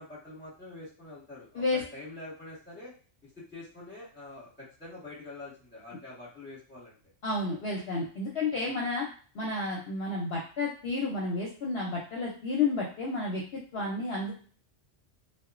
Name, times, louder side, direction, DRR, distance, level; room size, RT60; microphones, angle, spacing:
voice 1, 0.0-2.9 3.2-7.0 8.6-8.7, left 2 dB, 10° left, -8 dB, 1.3 m, -46 dB
voice 2, 7.2-9.1 9.3-14.3, left 3 dB, 60° left, -3 dB, 0.8 m, -31 dB
2.8 x 2.3 x 2.4 m, 0.41 s
omnidirectional pair, 1.3 m